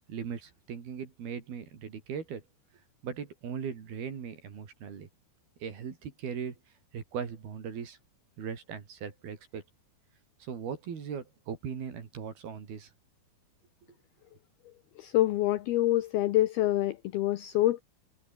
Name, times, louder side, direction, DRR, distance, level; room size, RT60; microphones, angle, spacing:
voice 1, 0.1-2.4 3.0-5.1 5.6-6.6 6.9-8.0 8.4-9.6 10.4-12.9, right 7 dB, 55° right, 5.1 m, -39 dB
voice 2, 15.0-17.8, left 15 dB, 80° left, 2.3 m, -26 dB
omnidirectional pair, 5.6 m